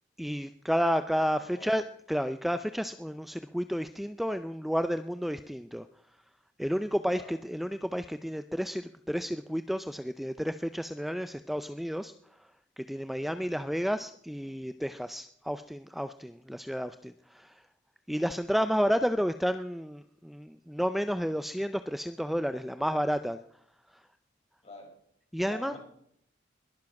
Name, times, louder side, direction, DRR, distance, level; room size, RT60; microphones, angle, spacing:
voice 1, 0.2-1.8 2.1-5.8 6.6-12.1 12.4-12.5 12.8-17.6 18.1-23.4 23.9-24.0 25.3-25.8, equal, ahead, 11 dB, 0.4 m, -31 dB
voice 2, 1.3-1.7 7.1-7.3 14.4-14.6 24.6-24.9 25.4-25.8, left 1 dB, 35° left, 0 dB, 5.6 m, -47 dB
21.0 x 7.4 x 5.9 m, 0.68 s
head